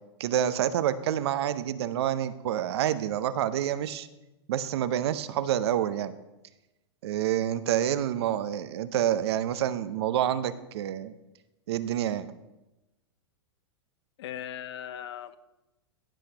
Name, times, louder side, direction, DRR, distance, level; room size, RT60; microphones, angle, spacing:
voice 1, 0.2-4.1 4.5-6.1 7.0-11.1 11.7-12.3, right 11 dB, 65° right, 12 dB, 0.6 m, -28 dB
voice 2, 14.2-15.4, left 10 dB, 70° left, 13 dB, 0.7 m, -38 dB
15.0 x 5.7 x 2.9 m, 0.98 s
hypercardioid pair, 130°, 14 cm